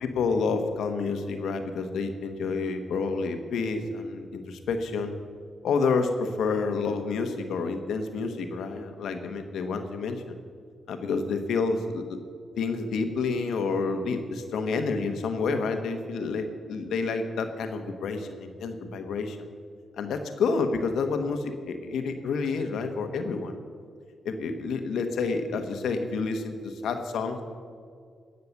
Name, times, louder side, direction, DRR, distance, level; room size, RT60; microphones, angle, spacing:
voice 1, 0.0-5.1 5.6-10.4 10.9-12.2 12.6-19.4 20.0-23.6 24.2-27.4, left 4 dB, 80° left, 7 dB, 1.2 m, -29 dB
18.0 x 6.7 x 7.2 m, 2.2 s
supercardioid pair, 60°, 0 cm